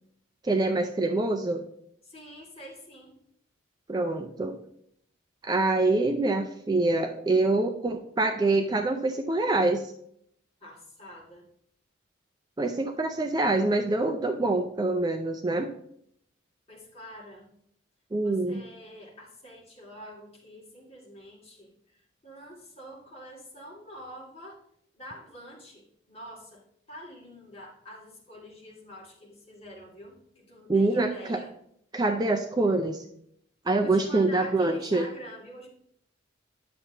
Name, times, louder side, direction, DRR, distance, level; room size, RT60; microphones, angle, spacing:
voice 1, 0.4-1.7 3.9-4.5 5.4-9.9 12.6-15.7 18.1-18.6 30.7-31.4 31.9-33.0 33.7-35.1, right 2 dB, 20° right, 5 dB, 0.4 m, -25 dB
voice 2, 2.0-3.2 10.6-11.4 16.7-17.5 18.2-24.6 24.9-31.5 33.8-35.7, equal, 30° left, -4 dB, 2.4 m, -46 dB
9.4 x 6.8 x 2.9 m, 0.70 s
head